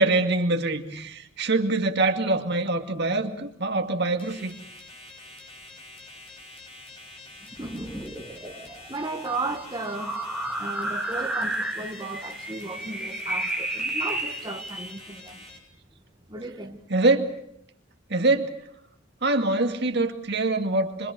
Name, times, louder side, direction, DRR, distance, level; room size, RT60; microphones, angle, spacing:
voice 1, 0.0-4.5 16.9-17.3 18.1-18.5 19.2-21.1, right 2 dB, 55° right, 2.3 m, -24 dB
sound 1, 4.2-15.6, left 2 dB, 30° left, 5.5 m, -46 dB
sound 2, 7.5-14.9, right 1 dB, 5° right, 3.4 m, -32 dB
voice 2, 7.6-8.6 8.9-10.2 10.6-15.4 16.3-16.8, right 2 dB, 20° right, 1.6 m, -35 dB
26.0 x 24.5 x 6.9 m
head